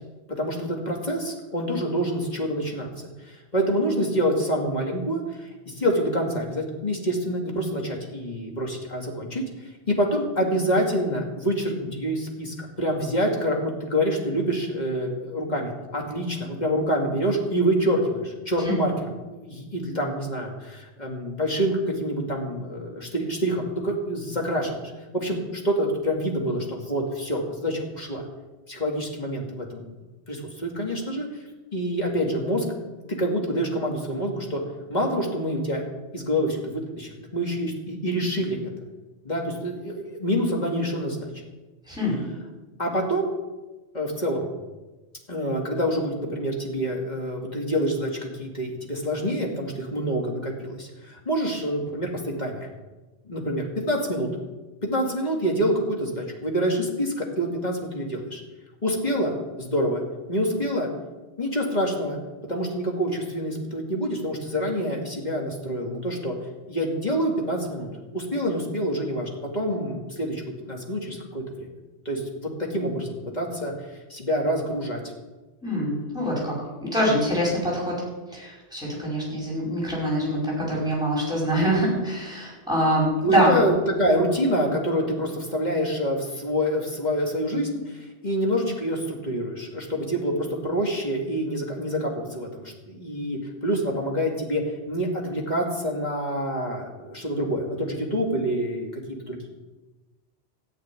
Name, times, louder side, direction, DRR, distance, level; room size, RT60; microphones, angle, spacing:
voice 1, 0.3-2.9 3.2-18.9 19.3-24.8 25.1-28.2 28.7-29.8 30.3-31.3 31.7-32.6 33.1-34.6 34.9-35.8 36.1-38.6 39.2-41.3 42.8-43.3 43.9-44.5 45.3-52.7 53.2-54.3 54.8-58.4 58.8-59.3 59.6-60.0 60.3-60.9 61.4-62.2 62.5-66.3 66.7-70.4 70.7-71.7 72.1-73.7 74.1-75.0 83.2-90.3 90.6-99.5, equal, 40° left, 0 dB, 2.5 m, -27 dB
voice 2, 41.9-42.2 75.6-76.5 76.8-77.9 78.3-83.6, equal, 5° right, -5 dB, 5.5 m, -24 dB
13.5 x 5.9 x 9.7 m, 1.2 s
omnidirectional pair, 1.2 m